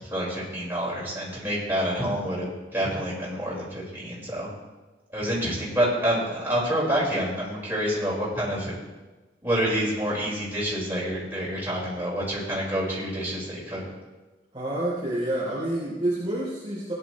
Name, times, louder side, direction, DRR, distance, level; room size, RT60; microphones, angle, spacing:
voice 1, 0.1-4.5 5.1-8.7 9.4-13.8, equal, 10° right, -7 dB, 4.7 m, -27 dB
voice 2, 14.5-16.9, right 1 dB, 30° right, -8 dB, 3.0 m, -28 dB
17.5 x 11.0 x 3.1 m, 1.2 s
head